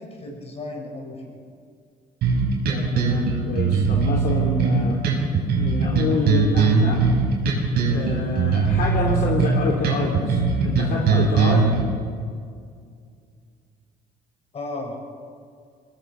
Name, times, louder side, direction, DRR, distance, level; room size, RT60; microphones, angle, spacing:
voice 1, 0.0-1.4 14.5-15.0, left 2 dB, 35° left, 1 dB, 6.5 m, -34 dB
sound 1, 2.2-11.8, right 4 dB, 70° right, 5.5 m, -20 dB
voice 2, 2.7-5.0 5.6-7.0 7.9-11.7, left 3 dB, 60° left, -1 dB, 3.1 m, -27 dB
22.5 x 18.0 x 7.0 m, 2.2 s
cardioid pair, 110°, 17 cm